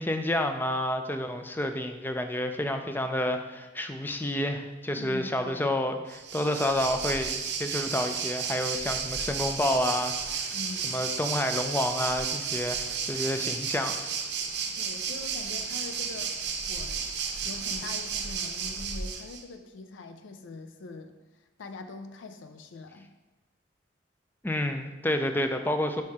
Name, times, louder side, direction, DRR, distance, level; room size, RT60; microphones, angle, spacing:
voice 1, 0.0-10.6 10.8-14.0 24.4-26.0, left 1 dB, 10° left, 7 dB, 0.4 m, -29 dB
voice 2, 4.9-5.8 10.5-11.0 14.8-16.4 16.7-17.1 17.4-21.1 21.6-23.1, left 3 dB, 80° left, 7 dB, 0.4 m, -43 dB
Waves surf, 6.1-19.4, right 6 dB, 60° right, 0.6 m, -33 dB
4.7 x 4.4 x 4.8 m, 1.1 s
head